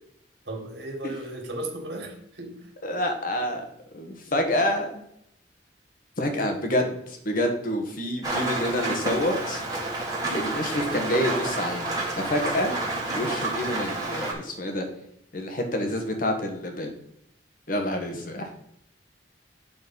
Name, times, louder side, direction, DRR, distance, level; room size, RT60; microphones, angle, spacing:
voice 1, 0.4-2.7, right 1 dB, 75° right, 2 dB, 1.7 m, -35 dB
voice 2, 2.8-3.7 3.9-5.0 6.2-9.6 10.3-12.7 13.1-14.8 15.3-16.9 17.7-18.5, left 1 dB, 50° left, 4 dB, 1.4 m, -28 dB
Rain, 8.2-14.3, right 2 dB, 20° right, 1.7 m, -29 dB
8.2 x 4.3 x 5.5 m, 0.75 s
head